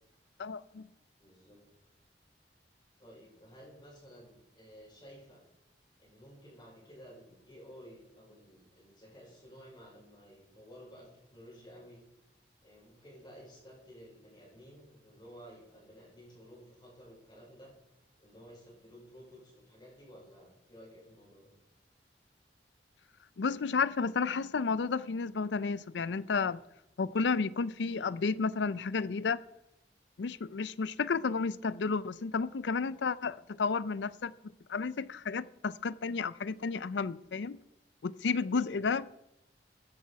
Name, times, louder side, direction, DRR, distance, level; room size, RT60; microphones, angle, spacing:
voice 1, 0.4-0.9 23.4-26.6 27.0-29.4 30.2-34.3 34.7-37.6 38.0-39.2, left 5 dB, 85° left, 0.5 m, -32 dB
voice 2, 1.2-1.6 3.0-5.4 6.0-12.0 12.6-17.7 18.2-21.5 38.6-38.8, equal, 25° left, 5.2 m, -54 dB
15.0 x 9.9 x 4.8 m
head